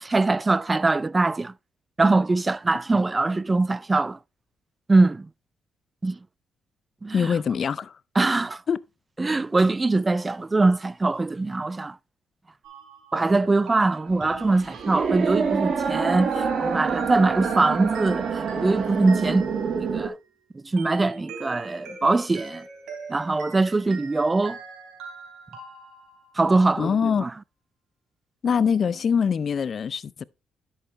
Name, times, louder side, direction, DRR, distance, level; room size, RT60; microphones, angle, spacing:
voice 1, 0.0-1.5 2.0-4.2 4.9-5.3 6.0-6.2 7.0-7.4 8.2-8.6 9.2-12.0 13.1-19.5 19.9-20.1 20.5-22.7 23.1-24.6 26.4-27.3, right 3 dB, 20° right, 0.3 m, -22 dB
voice 2, 7.1-7.9 8.7-8.8 26.8-27.2 28.4-30.2, left 6 dB, 50° left, 0.4 m, -23 dB
sound 1, 12.6-20.2 20.8-26.4 28.5-29.3, right 4 dB, 80° right, 3.3 m, -41 dB
sound 2, 14.1-20.1, right 6 dB, 50° right, 1.6 m, -27 dB
11.0 x 6.4 x 3.1 m
cardioid pair, 90°, 0 cm